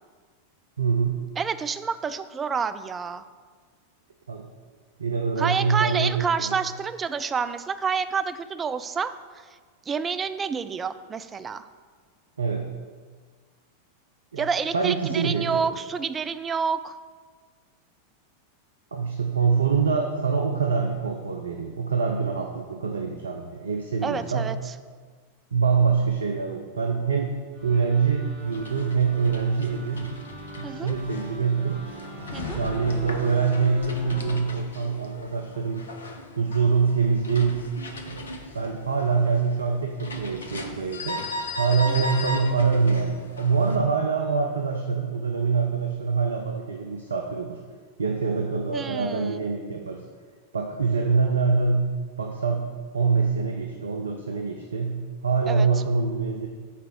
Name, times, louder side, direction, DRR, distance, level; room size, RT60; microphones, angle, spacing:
voice 1, 0.8-1.2 4.3-4.5 5.0-6.5 12.4-12.7 14.3-15.7 18.9-24.5 25.5-27.3 27.6-30.1 30.6-31.8 32.5-35.9 36.4-37.6 38.1-38.3 38.5-41.2 41.6-47.6 48.0-50.0 50.5-51.9 52.2-52.7 52.9-56.5, right 5 dB, 75° right, 3 dB, 0.5 m, -25 dB
voice 2, 1.4-3.3 5.4-9.5 9.9-11.7 14.4-17.0 24.0-24.7 30.6-30.9 32.3-32.6 41.9-42.0 48.7-49.4 55.5-55.7, right 6 dB, 20° right, 11 dB, 0.3 m, -29 dB
sound 1, 27.5-34.4, equal, 35° right, 1.7 m, -42 dB
sound 2, 28.4-43.8, left 2 dB, 70° left, 0.7 m, -38 dB
5.8 x 4.5 x 6.1 m, 1.5 s
figure-of-eight pair, 90°, 0 cm